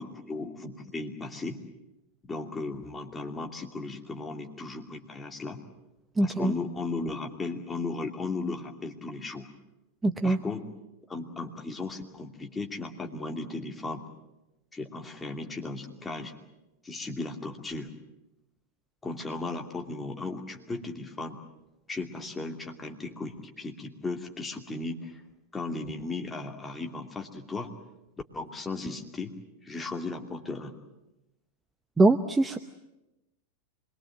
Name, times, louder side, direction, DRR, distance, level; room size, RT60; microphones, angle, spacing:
voice 1, 0.0-1.6 2.2-5.6 6.2-9.5 10.2-10.7 11.1-14.0 14.7-16.3 16.8-17.9 19.0-21.4 21.9-25.2 25.5-27.7 28.3-29.4 29.6-30.8, left 3 dB, 10° left, 2 dB, 2.7 m, -36 dB
voice 2, 6.2-6.5 10.0-10.4 32.0-32.6, right 2 dB, 10° right, 8 dB, 0.9 m, -22 dB
26.0 x 22.5 x 7.7 m, 0.96 s
figure-of-eight pair, 90°, 0 cm